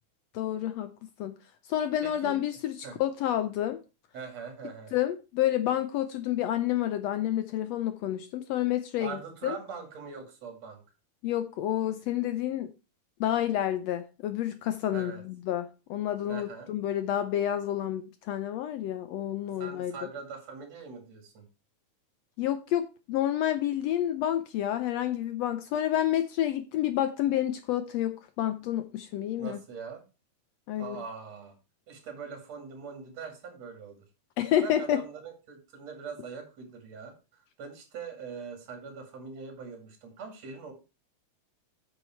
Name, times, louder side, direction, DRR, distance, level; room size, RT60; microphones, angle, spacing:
voice 1, 0.3-0.9 1.2-1.4 1.7-3.8 4.9-9.2 9.4-9.6 11.2-12.7 13.2-19.9 22.4-29.6 30.7-31.0 34.4-35.0, left 12 dB, 80° left, 1.6 m, -29 dB
voice 2, 2.0-2.4 2.8-3.0 4.1-5.0 9.0-10.8 14.9-15.2 16.3-16.7 19.6-21.5 29.4-30.0 30.8-31.6 31.9-34.1 34.6-40.7, right 5 dB, 60° right, 3.4 m, -42 dB
8.5 x 6.4 x 4.5 m
omnidirectional pair, 3.4 m